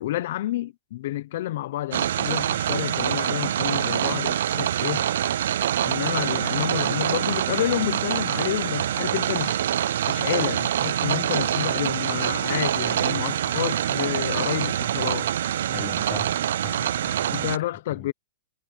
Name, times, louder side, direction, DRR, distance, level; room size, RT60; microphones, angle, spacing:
voice 1, 0.0-5.1 5.8-9.6 10.1-15.3 17.3-18.1, left 14 dB, 60° left, 0.8 m, -29 dB
sound 1, 1.9-17.6, right 11 dB, 75° right, 0.4 m, -25 dB
voice 2, 15.7-17.5 17.9-18.1, left 7 dB, 15° left, 0.6 m, -40 dB
hypercardioid pair, 145°, 0 cm